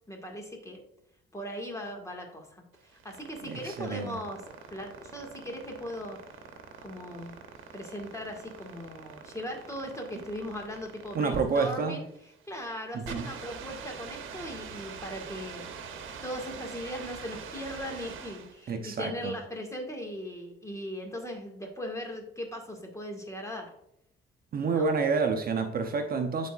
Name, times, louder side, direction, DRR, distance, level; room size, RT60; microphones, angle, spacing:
voice 1, 0.1-0.8 1.3-4.4 4.7-6.2 6.8-7.3 7.7-12.1 12.5-23.7 24.7-24.9, equal, 15° left, 1 dB, 2.0 m, -39 dB
sound 1, 2.7-18.6, right 6 dB, 80° right, 1.0 m, -44 dB
voice 2, 3.4-4.2 11.1-12.0 12.9-13.3 18.7-19.4 24.5-26.5, right 4 dB, 50° right, 6 dB, 0.8 m, -29 dB
11.5 x 4.2 x 2.5 m, 0.77 s
cardioid pair, 90°, 20 cm